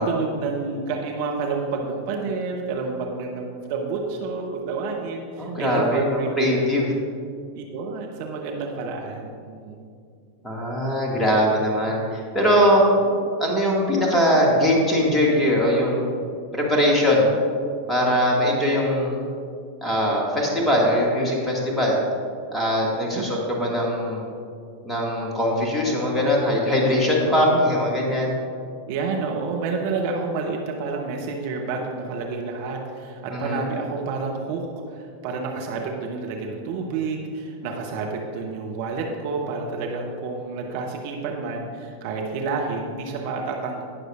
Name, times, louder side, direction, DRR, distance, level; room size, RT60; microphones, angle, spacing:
voice 1, 0.0-6.7 7.5-9.8 23.1-23.4 27.3-27.7 28.9-43.8, right 4 dB, 50° right, 1 dB, 1.0 m, -29 dB
voice 2, 5.4-6.9 10.4-12.8 13.4-16.0 16.5-17.3 17.9-19.2 19.8-22.0 22.5-24.3 24.8-28.3 33.3-33.6, equal, 10° left, -3 dB, 2.0 m, -21 dB
18.5 x 6.5 x 2.5 m, 2.3 s
figure-of-eight pair, 90°, 0 cm